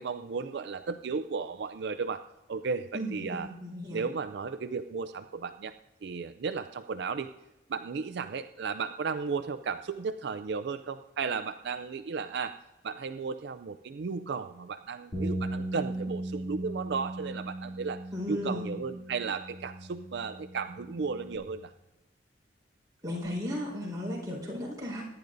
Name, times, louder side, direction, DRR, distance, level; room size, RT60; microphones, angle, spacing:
voice 1, 0.0-2.2 2.5-3.5 3.9-5.7 6.0-7.3 7.7-12.6 12.8-18.0 18.3-21.7, right 5 dB, 60° right, 8 dB, 0.4 m, -34 dB
voice 2, 2.9-4.0 18.1-18.7 23.0-25.0, left 1 dB, 20° right, -4 dB, 4.6 m, -35 dB
sound 1, 15.1-21.4, right 1 dB, 25° left, 2.7 m, -38 dB
23.0 x 10.5 x 2.6 m, 1.0 s
head